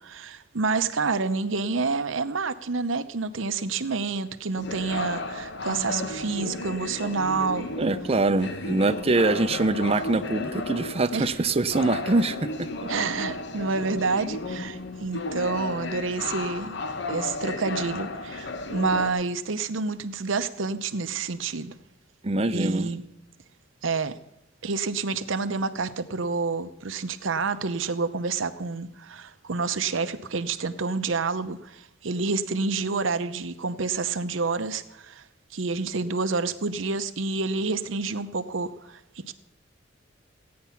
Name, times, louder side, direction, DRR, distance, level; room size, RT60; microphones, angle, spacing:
voice 1, 0.0-7.7 11.1-11.3 12.9-16.8 17.1-21.7 22.5-23.0 23.8-24.2 24.6-35.2 35.5-39.3, right 4 dB, 85° right, 0.8 m, -28 dB
sound 1, 4.6-19.1, left 2 dB, 65° left, 1.0 m, -34 dB
voice 2, 7.8-12.9 22.2-22.9, right 2 dB, 30° right, 0.6 m, -24 dB
15.5 x 9.5 x 5.8 m
head